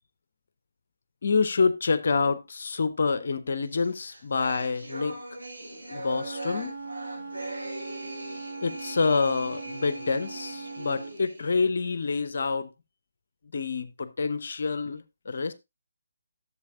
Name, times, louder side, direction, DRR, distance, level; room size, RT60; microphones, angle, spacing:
voice 1, 1.2-5.2 5.9-6.7 8.6-12.7 13.5-15.5, left 4 dB, 55° left, 0.6 m, -27 dB
sound 1, 3.8-11.6, right 1 dB, 80° right, 4.8 m, -40 dB
Wind instrument woodwind instrument, 6.1-11.1, right 3 dB, 45° right, 3.2 m, -40 dB
11.5 x 7.3 x 2.4 m
figure-of-eight pair, 145°, 0 cm